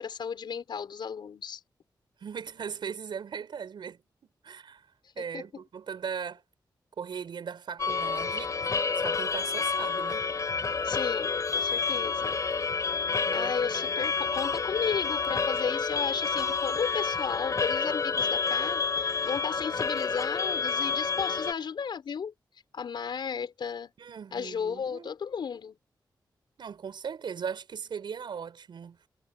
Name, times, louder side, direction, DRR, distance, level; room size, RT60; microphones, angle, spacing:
voice 1, 0.0-1.6 5.2-5.6 10.8-12.4 13.3-18.8 19.2-22.3 22.7-23.9 24.3-25.8, left 6 dB, 75° left, 4.5 m, -34 dB
voice 2, 2.2-4.8 5.2-6.4 7.0-10.2 13.2-14.0 24.0-25.1 26.6-29.1, right 7 dB, 80° right, 5.7 m, -39 dB
sound 1, 7.8-21.5, left 5 dB, 45° left, 5.4 m, -29 dB
wide cardioid pair, 155°, 8 cm